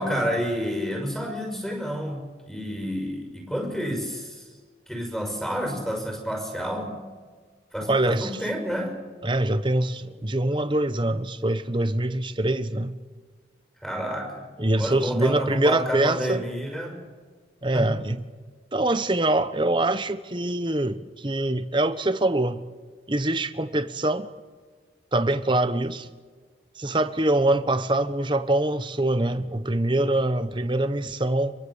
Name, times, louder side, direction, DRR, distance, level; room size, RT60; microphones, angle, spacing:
voice 1, 0.0-4.5 4.9-7.0 7.7-8.9 13.8-14.5 14.8-17.0 17.7-17.9, equal, ahead, 2 dB, 5.7 m, -29 dB
voice 2, 7.9-8.3 9.2-13.0 14.6-16.4 17.6-18.2 18.7-22.6 23.1-24.3 25.1-26.1 26.8-31.5, right 1 dB, 25° right, 10 dB, 1.2 m, -24 dB
28.0 x 23.0 x 7.2 m, 1.5 s
head